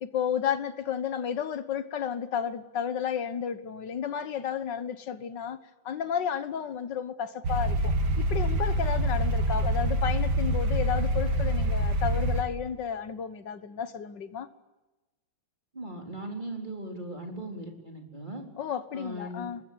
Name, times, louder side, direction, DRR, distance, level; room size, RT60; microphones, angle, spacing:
voice 1, 0.0-5.6 5.9-14.5 18.6-19.6, left 8 dB, 60° left, 1.9 m, -32 dB
sound 1, 7.4-12.4, right 1 dB, 55° right, 2.3 m, -26 dB
voice 2, 15.7-18.5 18.9-19.5, right 1 dB, 20° right, 4.1 m, -38 dB
25.5 x 20.5 x 9.6 m
omnidirectional pair, 2.2 m